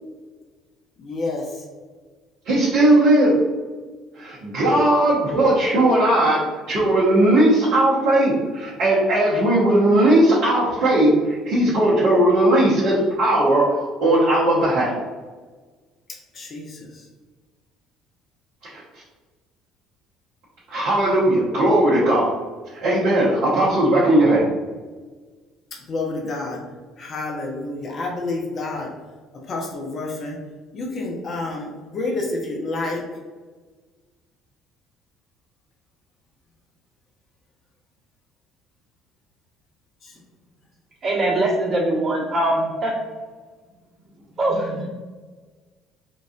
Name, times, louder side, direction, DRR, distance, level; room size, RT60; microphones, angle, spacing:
voice 1, 1.0-1.6 16.3-17.1 25.9-26.6 27.0-28.9 29.5-30.4 30.7-33.0 40.0-40.2, left 2 dB, 45° left, -1 dB, 0.8 m, -29 dB
voice 2, 2.5-3.4 4.2-15.0 18.6-18.8 20.7-22.3 22.8-24.5, right 1 dB, 65° right, -9 dB, 1.0 m, -18 dB
voice 3, 41.0-42.9 44.3-44.9, right 1 dB, 45° right, -5 dB, 1.4 m, -22 dB
3.8 x 2.5 x 2.4 m, 1.4 s
hypercardioid pair, 60°, 0 cm